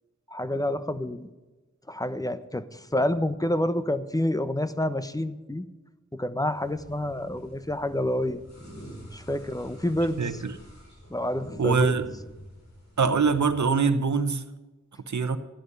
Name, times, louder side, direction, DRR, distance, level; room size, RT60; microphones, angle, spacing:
voice 1, 0.3-1.3 1.9-5.7 6.1-8.4 9.1-10.2 11.1-11.9, left 1 dB, 10° left, 11 dB, 1.1 m, -28 dB
sound 1, 6.5-13.6, equal, 65° left, 5.5 m, -46 dB
voice 2, 10.2-10.5 11.6-12.1 13.0-14.4 15.1-15.4, right 5 dB, 75° right, 10 dB, 1.1 m, -23 dB
14.0 x 11.5 x 5.5 m, 1.1 s
cardioid pair, 50°, 29 cm